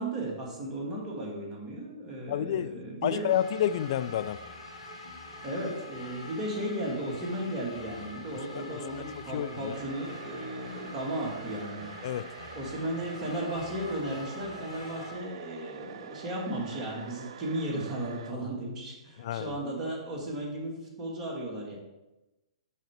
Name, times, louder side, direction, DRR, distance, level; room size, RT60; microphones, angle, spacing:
voice 1, 0.0-3.3 5.4-11.9 12.5-21.8, right 1 dB, 20° right, -4 dB, 2.4 m, -35 dB
voice 2, 2.3-4.4 8.5-9.7 12.0-12.3 19.2-19.6, left 10 dB, 50° left, 14 dB, 0.4 m, -30 dB
sound 1, 3.3-15.1, left 2 dB, 75° left, 2.5 m, -45 dB
sound 2, 9.7-18.3, right 8 dB, 60° right, 0.5 m, -46 dB
6.5 x 5.1 x 5.2 m, 1.0 s
hypercardioid pair, 120°, 3 cm